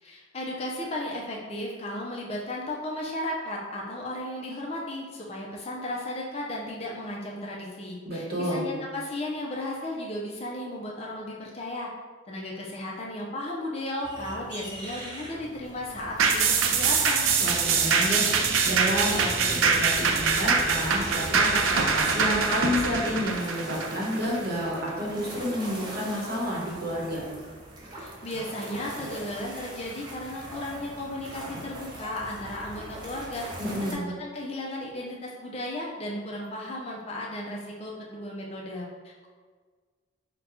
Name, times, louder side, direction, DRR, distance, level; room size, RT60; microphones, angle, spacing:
voice 1, 0.0-11.9 12.3-17.2 27.9-33.5 33.9-39.3, left 1 dB, 30° left, -2 dB, 0.5 m, -35 dB
voice 2, 8.0-8.7 17.4-27.2 33.6-34.1, equal, 50° right, -4 dB, 1.0 m, -30 dB
sound 1, 14.0-33.9, right 1 dB, 20° right, 0.5 m, -40 dB
sound 2, 16.2-24.9 25.3-25.4, right 5 dB, 80° right, 0.4 m, -24 dB
3.9 x 2.2 x 4.2 m, 1.5 s
head